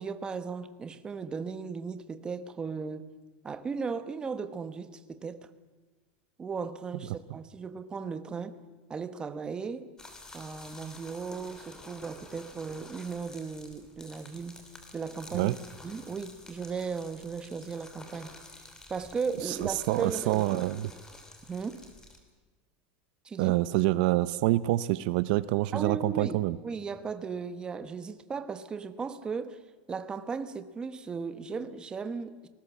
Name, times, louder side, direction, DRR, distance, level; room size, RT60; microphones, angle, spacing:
voice 1, 0.0-3.1 3.4-5.5 6.4-8.6 8.9-9.9 10.3-14.6 14.9-15.5 15.8-18.4 18.9-20.6 21.5-21.8 23.2-23.6 25.7-26.4 26.6-29.6 29.9-32.5, right 5 dB, 15° right, 1.1 m, -36 dB
sound 1, 10.0-22.2, left 2 dB, 10° left, 3.1 m, -50 dB
voice 2, 19.5-20.9 23.4-26.6, right 17 dB, 65° right, 0.8 m, -26 dB
30.0 x 19.0 x 7.2 m
supercardioid pair, 160°, 5 cm